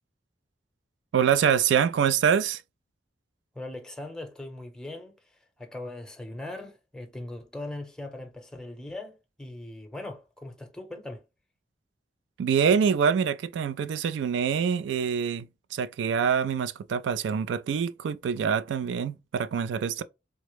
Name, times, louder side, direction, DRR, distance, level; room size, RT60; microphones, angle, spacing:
voice 1, 1.1-2.6 12.4-20.0, right 7 dB, 80° right, 0.3 m, -25 dB
voice 2, 3.5-5.2 5.6-11.2, left 2 dB, 5° left, 0.7 m, -40 dB
3.8 x 2.0 x 3.1 m
head